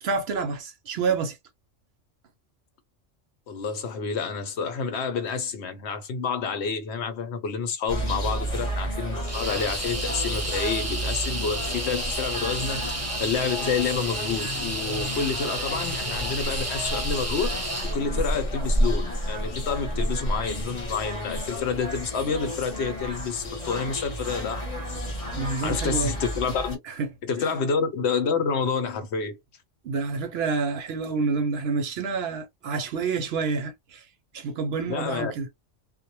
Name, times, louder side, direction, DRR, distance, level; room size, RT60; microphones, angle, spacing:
voice 1, 0.0-1.4 25.3-26.1 26.9-27.1 27.4-27.5 29.8-34.1 34.3-35.5, right 4 dB, 65° right, 0.7 m, -28 dB
voice 2, 3.5-12.8 13.2-24.7 25.1-25.2 25.6-26.8 27.2-29.4 34.9-35.3, left 5 dB, 70° left, 0.9 m, -29 dB
sound 1, 7.9-26.8, equal, 30° left, 0.8 m, -31 dB
sound 2, 9.3-18.0, right 2 dB, 20° right, 0.4 m, -32 dB
2.1 x 2.1 x 2.8 m
omnidirectional pair, 1.3 m